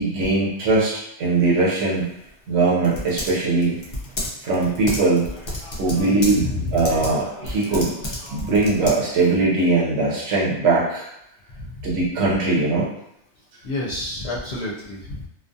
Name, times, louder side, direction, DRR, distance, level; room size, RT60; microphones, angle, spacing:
voice 1, 0.0-2.1 2.5-3.8 4.4-5.3 5.8-7.9 8.3-11.1 11.8-12.9, right 3 dB, 85° right, -5 dB, 1.0 m, -20 dB
Typing, 1.9-9.4, left 1 dB, 45° left, 0.3 m, -33 dB
voice 2, 5.9-6.8 11.6-11.9 13.6-15.3, left 2 dB, 70° left, -5 dB, 0.8 m, -30 dB
2.3 x 2.3 x 2.5 m, 0.76 s
omnidirectional pair, 1.2 m